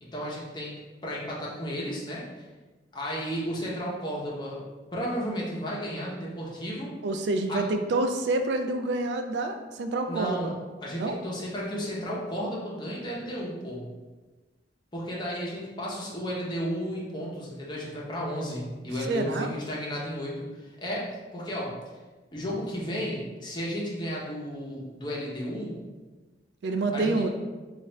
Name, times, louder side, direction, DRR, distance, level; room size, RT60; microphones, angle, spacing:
voice 1, 0.0-2.4 2.9-4.7 4.9-7.0 7.5-7.6 10.1-10.5 10.8-13.8 14.9-21.7 22.3-25.8 26.9-27.3, equal, 25° left, -5 dB, 0.7 m, -33 dB
voice 2, 7.0-10.5 10.9-11.2 19.1-19.5 26.6-27.3, right 2 dB, 75° right, 6 dB, 0.3 m, -27 dB
4.0 x 2.4 x 3.2 m, 1.3 s
head